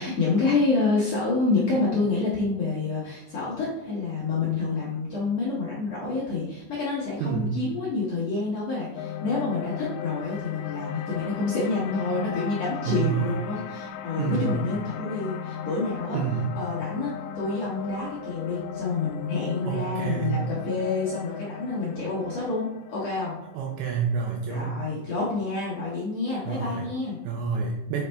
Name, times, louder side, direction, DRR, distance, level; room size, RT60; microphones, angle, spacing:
voice 1, 0.0-16.2 16.6-23.4 24.5-27.2, left 3 dB, 65° left, -6 dB, 1.7 m, -28 dB
voice 2, 7.2-7.6 12.9-13.3 14.2-14.6 16.1-16.5 19.6-20.4 23.5-24.7 26.5-26.9 27.2-28.0, right 7 dB, 80° right, 0 dB, 1.9 m, -28 dB
sound 1, 9.0-25.2, left 8 dB, 85° left, 2.4 m, -37 dB
6.5 x 5.3 x 3.4 m, 0.87 s
omnidirectional pair, 4.5 m